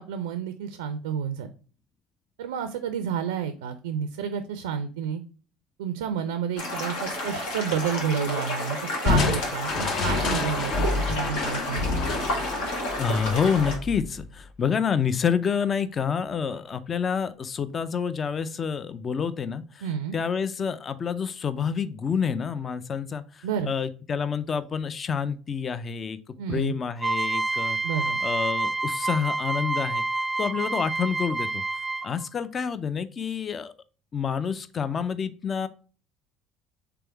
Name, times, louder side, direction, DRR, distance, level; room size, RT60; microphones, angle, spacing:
voice 1, 0.0-1.5 2.4-5.2 5.8-8.8 9.0-11.9 19.8-20.2 23.4-23.7 26.4-26.8 27.8-28.2, right 8 dB, 85° right, 9 dB, 0.4 m, -30 dB
sound 1, 6.6-13.8, left 1 dB, 80° left, 1.3 m, -31 dB
Crushing, 9.1-14.4, left 3 dB, 55° left, 0.8 m, -28 dB
voice 2, 12.7-19.8 20.1-26.2 26.5-27.8 28.2-30.0 30.4-31.6 32.0-33.7 34.1-35.7, left 6 dB, 40° left, 13 dB, 0.4 m, -28 dB
sound 2, 27.0-32.2, right 2 dB, 15° right, 0.5 m, -28 dB
3.5 x 3.4 x 4.4 m, 0.38 s
hypercardioid pair, 70°, 0 cm